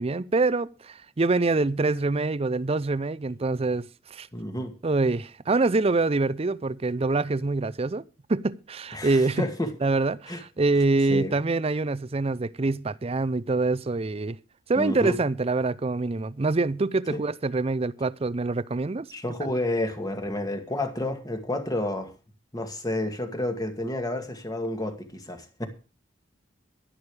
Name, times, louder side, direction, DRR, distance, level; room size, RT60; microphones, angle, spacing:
voice 1, 0.0-4.3 4.8-8.0 8.3-9.5 9.8-14.4 14.7-19.1, right 3 dB, 35° right, 0.5 m, -25 dB
voice 2, 4.3-4.7 8.9-9.7 10.3-10.4 11.1-11.4 14.8-15.2 17.1-17.2 19.1-22.1 22.5-25.7, left 1 dB, 20° left, 2.1 m, -30 dB
11.5 x 11.0 x 4.9 m
head